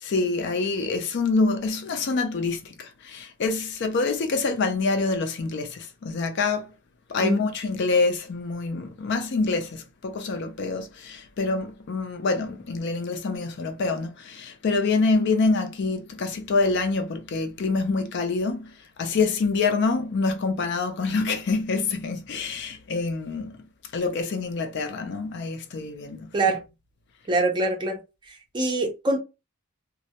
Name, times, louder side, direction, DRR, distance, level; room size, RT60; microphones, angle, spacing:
voice 1, 0.0-6.7 7.1-26.3, left 3 dB, 50° left, 0.4 m, -26 dB
voice 2, 27.3-28.0 28.5-29.2, right 2 dB, 20° right, 0.5 m, -23 dB
2.2 x 2.0 x 2.8 m
head